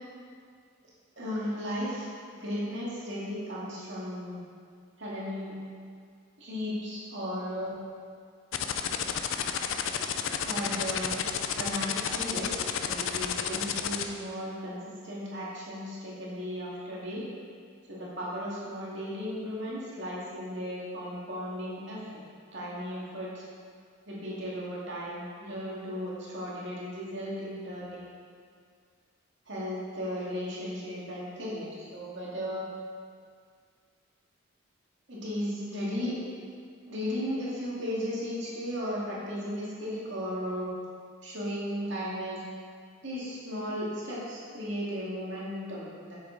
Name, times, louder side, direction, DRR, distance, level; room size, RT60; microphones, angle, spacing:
voice 1, 1.2-2.1 2.4-4.4 5.0-5.6 6.4-7.7 10.4-11.2 11.5-17.2 17.9-22.0 22.5-23.4 24.1-28.0 29.5-32.6 35.1-36.2 36.9-40.7 41.2-42.4 43.0-46.2, equal, 65° right, -7 dB, 2.1 m, -35 dB
sound 1, 8.5-14.0, left 8 dB, 80° left, 0.5 m, -30 dB
7.7 x 6.6 x 3.9 m, 2.1 s
head